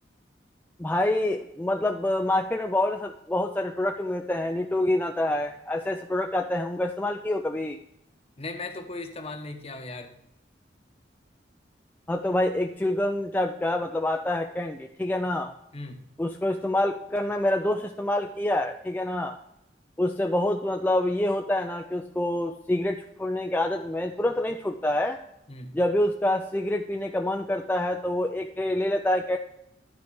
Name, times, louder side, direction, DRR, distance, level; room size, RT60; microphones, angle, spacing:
voice 1, 0.8-7.8 12.1-15.5 16.2-19.4 20.0-25.2 25.7-29.4, left 1 dB, 10° left, 3 dB, 0.4 m, -26 dB
voice 2, 8.4-10.2 15.7-16.1 25.5-25.8, left 2 dB, 35° left, 6 dB, 0.9 m, -37 dB
11.5 x 4.6 x 4.6 m, 0.82 s
head